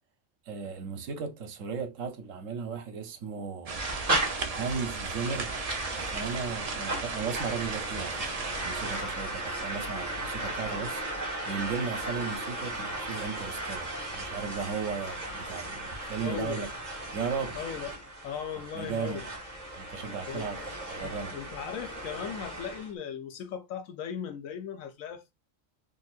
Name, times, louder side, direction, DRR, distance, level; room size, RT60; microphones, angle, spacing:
voice 1, 0.5-3.8 4.5-5.5 6.0-11.0 11.5-16.7 17.1-17.6 18.7-19.2 19.7-20.6 20.9-21.3, right 5 dB, 80° right, 1.0 m, -35 dB
sound 1, 3.7-9.0, right 4 dB, 55° right, 0.4 m, -36 dB
sound 2, 3.8-22.9, right 1 dB, 30° right, 1.6 m, -36 dB
voice 2, 16.2-16.7 17.5-19.3 20.3-20.7 21.0-25.3, left 8 dB, 90° left, 1.1 m, -38 dB
3.8 x 2.6 x 2.4 m
omnidirectional pair, 1.3 m